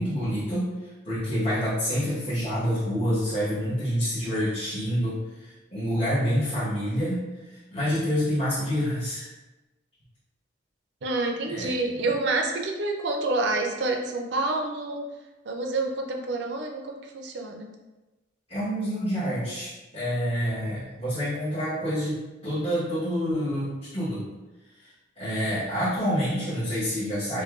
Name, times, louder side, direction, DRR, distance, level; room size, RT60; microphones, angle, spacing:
voice 1, 0.0-9.3 11.5-11.7 18.5-24.2 24.8-27.4, equal, 30° left, -14 dB, 1.1 m, -28 dB
voice 2, 11.0-15.0 15.4-17.7, right 2 dB, 65° right, 2 dB, 0.4 m, -28 dB
5.1 x 2.2 x 2.4 m, 1.1 s
head